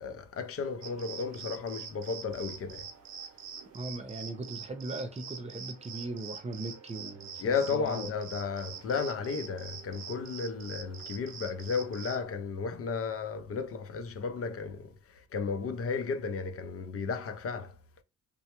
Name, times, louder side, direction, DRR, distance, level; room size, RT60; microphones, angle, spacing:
voice 1, 0.0-2.9 7.4-17.8, left 5 dB, 50° left, 0.5 m, -34 dB
sound 1, 0.8-12.2, right 7 dB, 65° right, 0.8 m, -45 dB
voice 2, 3.7-8.1, right 2 dB, 20° right, 0.7 m, -39 dB
3.2 x 2.2 x 3.0 m
cardioid pair, 90°, 30 cm